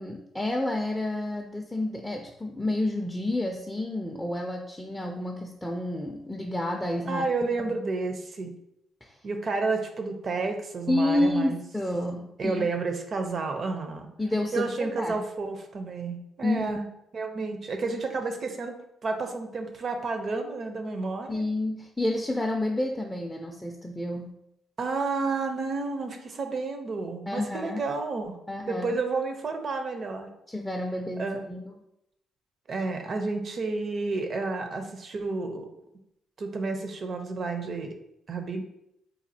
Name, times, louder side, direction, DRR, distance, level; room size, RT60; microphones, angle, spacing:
voice 1, 0.0-7.2 7.6-7.7 9.0-9.2 10.9-12.7 14.2-15.2 16.4-16.6 21.3-24.3 27.3-27.9 28.5-29.0 30.5-31.7, left 1 dB, 10° left, 2 dB, 0.4 m, -29 dB
voice 2, 7.0-8.5 9.2-11.6 12.4-14.1 14.5-16.9 17.1-21.4 24.8-28.4 28.7-30.3 31.2-31.4 32.7-35.7 36.4-38.0 38.3-38.6, right 3 dB, 50° right, 5 dB, 0.5 m, -31 dB
4.1 x 2.3 x 2.6 m, 0.80 s
cardioid pair, 90°, 0 cm